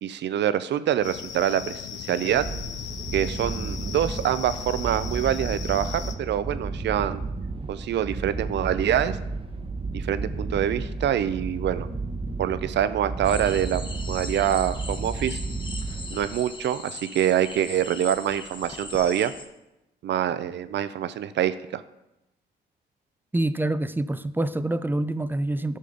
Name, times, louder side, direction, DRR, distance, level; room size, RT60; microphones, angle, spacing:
voice 1, 0.0-2.4 3.1-7.2 7.7-9.2 9.9-11.9 12.4-15.4 16.1-19.3 20.0-21.8, right 10 dB, 70° right, 0.5 m, -25 dB
sound 1, 1.0-6.1, left 9 dB, 75° left, 0.6 m, -37 dB
sound 2, 2.3-16.6, right 3 dB, 30° right, 0.8 m, -33 dB
sound 3, 13.2-19.5, left 2 dB, 25° left, 1.2 m, -39 dB
voice 2, 23.3-25.8, right 1 dB, 10° right, 0.4 m, -26 dB
10.0 x 5.5 x 3.9 m
supercardioid pair, 60°, 19 cm